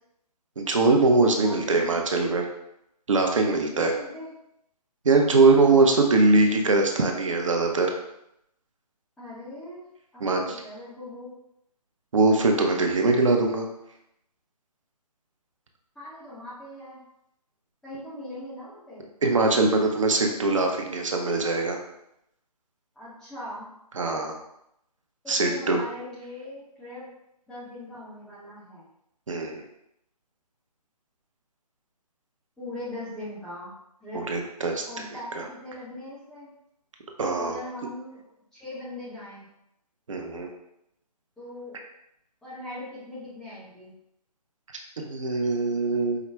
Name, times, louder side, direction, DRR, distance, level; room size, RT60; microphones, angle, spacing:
voice 1, 0.6-2.4 3.1-3.9 5.0-7.9 10.2-10.4 12.1-13.7 19.2-21.8 24.0-24.3 25.3-25.8 29.3-29.6 34.1-34.8 35.4-35.5 37.2-37.6 40.1-40.5 45.0-46.2, right 3 dB, 50° right, 2 dB, 0.6 m, -22 dB
voice 2, 1.3-2.0 3.7-4.3 9.2-9.8 10.1-11.3 15.9-17.0 17.8-19.0 23.0-23.7 25.2-27.1 27.5-28.9 32.6-33.7 34.0-34.3 34.9-36.5 37.4-39.5 41.4-41.7 42.4-43.9, left 1 dB, ahead, -11 dB, 0.5 m, -40 dB
4.7 x 2.1 x 3.3 m, 0.80 s
figure-of-eight pair, 145°, 21 cm